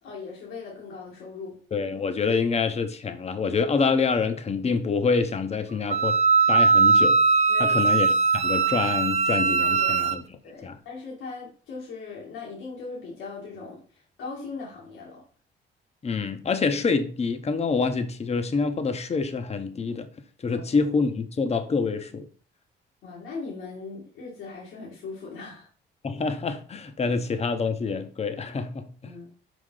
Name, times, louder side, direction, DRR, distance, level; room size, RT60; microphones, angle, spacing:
voice 1, 0.0-1.6 7.5-7.8 9.6-10.0 10.4-15.2 20.5-20.6 23.0-25.7 29.0-29.3, left 3 dB, 85° left, 2.0 m, -39 dB
voice 2, 1.7-6.1 6.5-7.2 7.6-10.2 10.6-10.7 16.0-20.1 20.4-22.3 26.0-29.1, left 4 dB, 30° left, 0.8 m, -26 dB
Wind instrument woodwind instrument, 5.9-10.2, right 4 dB, 35° right, 0.5 m, -20 dB
5.1 x 5.0 x 3.8 m
cardioid pair, 90°, 20 cm